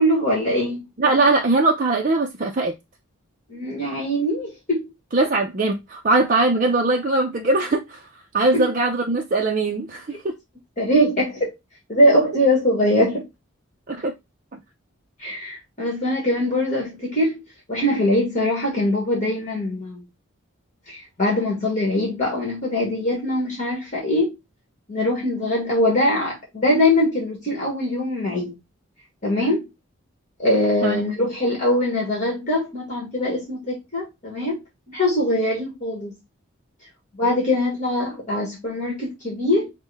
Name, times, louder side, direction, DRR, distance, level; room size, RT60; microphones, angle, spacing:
voice 1, 0.0-0.8 3.5-4.8 8.5-8.7 10.8-11.5 11.9-13.3 15.2-17.4 17.7-20.0 20.9-24.3 24.9-28.6 29.2-29.6 30.4-34.6 34.9-36.2 37.1-39.7, left 1 dB, 35° left, 1.4 m, -22 dB
voice 2, 1.0-2.7 5.1-8.0 8.3-10.3 13.9-14.1 30.8-31.0, right 2 dB, 40° right, 0.5 m, -21 dB
6.3 x 2.2 x 3.4 m
head